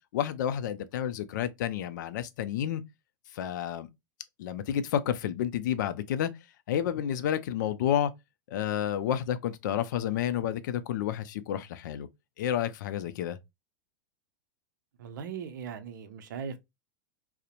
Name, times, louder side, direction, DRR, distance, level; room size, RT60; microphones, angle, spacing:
voice 1, 0.1-2.8 3.3-3.9 4.4-6.3 6.7-8.1 8.5-12.1 12.4-13.4, left 10 dB, 65° left, 0.4 m, -30 dB
voice 2, 15.0-16.6, right 7 dB, 65° right, 0.5 m, -39 dB
2.7 x 2.1 x 2.4 m
hypercardioid pair, 95°, 11 cm